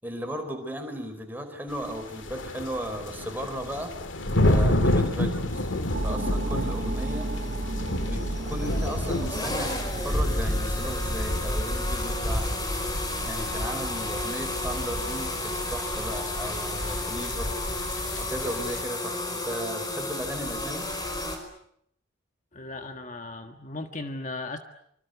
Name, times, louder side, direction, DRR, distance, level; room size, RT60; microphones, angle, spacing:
voice 1, 0.0-3.9 4.4-5.7 6.0-7.3 8.0-12.6 13.2-17.5 18.2-20.9, equal, 10° right, 4 dB, 4.9 m, -36 dB
sound 1, 1.7-18.8, left 1 dB, 75° left, 2.3 m, -31 dB
sound 2, 5.5-21.4, left 1 dB, 20° left, 5.0 m, -32 dB
sound 3, 5.9-12.2, right 1 dB, 55° right, 1.1 m, -33 dB
voice 2, 22.5-24.6, left 2 dB, 40° left, 6 dB, 1.6 m, -36 dB
26.5 x 25.5 x 8.2 m, 0.70 s
head